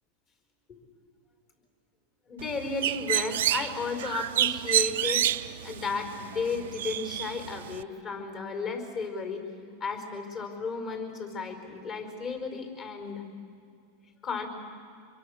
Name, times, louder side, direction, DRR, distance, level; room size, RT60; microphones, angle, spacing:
voice 1, 2.3-9.5 9.8-13.2 14.2-14.5, left 4 dB, 40° left, 5 dB, 4.8 m, -34 dB
Bird, 2.4-7.8, right 13 dB, 80° right, 0.5 m, -29 dB
26.0 x 22.5 x 6.5 m, 2.3 s
supercardioid pair, 125°, 0 cm